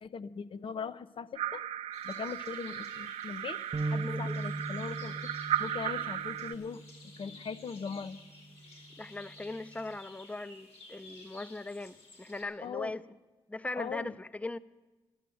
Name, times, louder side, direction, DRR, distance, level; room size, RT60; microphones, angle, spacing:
voice 1, 0.0-1.6 2.0-5.3 5.6-6.8 7.2-8.2 12.6-12.9 13.8-14.1, left 6 dB, 55° left, 13 dB, 0.7 m, -40 dB
sound 1, 1.4-6.5, right 11 dB, 90° right, 0.5 m, -36 dB
sound 2, 1.9-12.4, left 2 dB, 75° left, 4.7 m, -54 dB
sound 3, 3.7-10.0, right 2 dB, 30° right, 0.6 m, -40 dB
voice 2, 4.0-4.4 9.0-13.0 13.5-14.6, left 2 dB, 15° left, 16 dB, 0.6 m, -39 dB
12.5 x 11.5 x 7.8 m, 1.2 s
cardioid pair, 70°, 11 cm